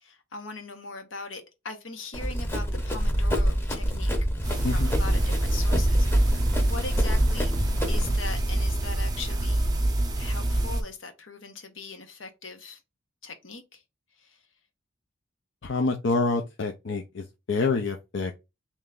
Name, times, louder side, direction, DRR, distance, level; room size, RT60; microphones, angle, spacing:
voice 1, 0.0-4.1 4.4-7.5 7.9-9.6 10.2-12.8 13.2-13.8 14.2-14.4, left 4 dB, 85° left, 1.0 m, -40 dB
Run, 2.1-8.2, equal, 15° left, 0.8 m, -26 dB
sound 1, 4.4-10.8, right 1 dB, 20° right, 0.6 m, -26 dB
voice 2, 15.6-18.5, left 3 dB, 65° left, 0.6 m, -27 dB
3.3 x 3.0 x 3.7 m
head